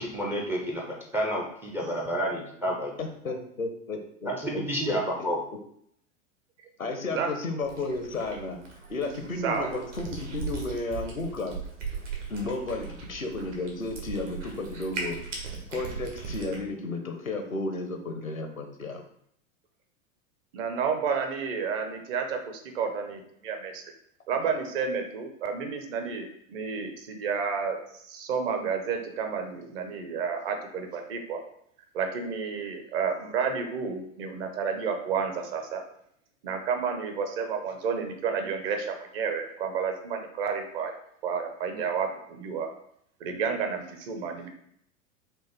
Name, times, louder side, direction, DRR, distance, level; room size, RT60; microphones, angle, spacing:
voice 1, 0.0-2.9 4.3-5.4, equal, 5° right, -2 dB, 0.3 m, -30 dB
voice 2, 3.0-4.6 4.9-5.0 6.8-8.6 8.9-11.5 12.3-15.2 15.7-19.0, left 2 dB, 90° left, 5 dB, 0.8 m, -33 dB
Cat, 7.6-16.6, right 5 dB, 65° right, 1.4 m, -39 dB
voice 3, 20.5-23.8 24.3-31.4 31.9-35.8 36.4-40.9 41.2-42.7 43.2-44.5, right 6 dB, 45° right, 5 dB, 0.9 m, -31 dB
5.5 x 2.5 x 3.4 m, 0.69 s
figure-of-eight pair, 90°, 40 cm